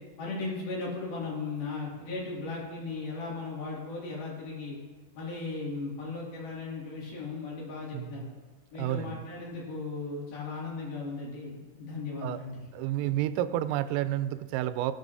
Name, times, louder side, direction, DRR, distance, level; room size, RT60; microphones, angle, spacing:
voice 1, 0.2-4.8 5.2-8.3 8.7-12.6, left 3 dB, 55° left, -5 dB, 3.8 m, -37 dB
voice 2, 7.9-8.3 8.8-9.2 12.2-12.4 12.7-14.9, right 13 dB, 90° right, 12 dB, 3.2 m, -30 dB
19.5 x 8.2 x 2.7 m, 1.4 s
omnidirectional pair, 5.7 m